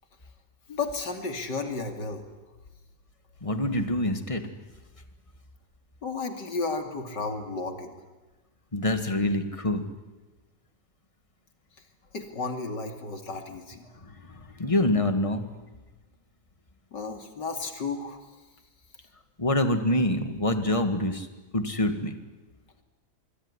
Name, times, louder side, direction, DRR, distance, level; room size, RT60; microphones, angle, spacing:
voice 1, 0.7-2.2 6.0-7.9 12.1-13.8 16.9-18.2, left 3 dB, 75° left, 5 dB, 3.3 m, -33 dB
voice 2, 3.4-4.4 8.7-9.8 14.0-15.5 19.4-21.3 21.5-22.1, left 1 dB, 20° left, 8 dB, 1.9 m, -26 dB
25.0 x 23.0 x 9.9 m, 1.2 s
omnidirectional pair, 1.9 m